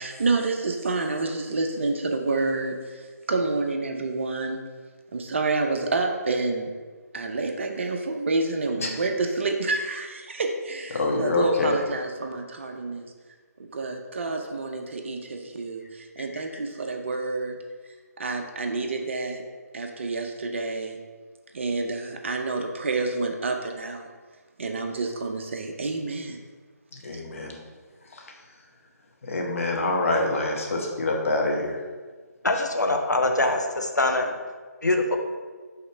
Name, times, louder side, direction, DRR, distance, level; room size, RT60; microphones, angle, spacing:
voice 1, 0.0-4.6 5.1-6.7 7.1-13.1 13.6-17.6 18.2-19.4 19.7-21.0 21.5-24.1 24.6-26.4, right 3 dB, 45° right, 4 dB, 0.7 m, -28 dB
voice 2, 10.9-11.7 16.2-16.6 26.9-27.6 28.1-28.3 29.3-31.8, left 2 dB, 50° left, -1 dB, 1.3 m, -26 dB
voice 3, 32.4-34.4 34.8-35.2, left 2 dB, 85° left, 3 dB, 0.8 m, -23 dB
5.7 x 3.2 x 5.6 m, 1.5 s
figure-of-eight pair, 150°, 9 cm